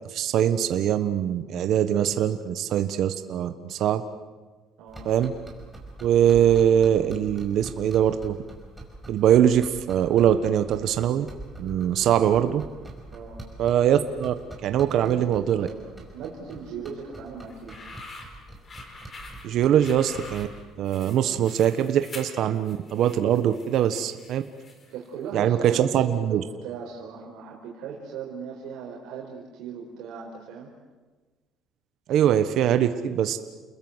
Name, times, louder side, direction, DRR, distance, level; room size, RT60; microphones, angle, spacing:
voice 1, 0.1-4.0 5.0-5.3 6.0-8.4 9.1-11.3 11.6-12.6 13.6-14.3 14.6-15.7 19.4-20.5 20.8-24.4 25.3-26.4 32.1-33.4, right 10 dB, 60° right, 9 dB, 1.2 m, -22 dB
voice 2, 4.8-5.1 12.0-12.3 13.1-13.6 14.9-15.3 15.6-17.8 24.9-30.7, right 6 dB, 75° right, -1 dB, 4.7 m, -38 dB
sound 1, 4.9-20.6, right 1 dB, 5° right, 5.4 m, -44 dB
sound 2, 17.5-25.1, left 3 dB, 30° left, 4.3 m, -45 dB
29.5 x 21.0 x 8.1 m, 1.3 s
cardioid pair, 145°, 0 cm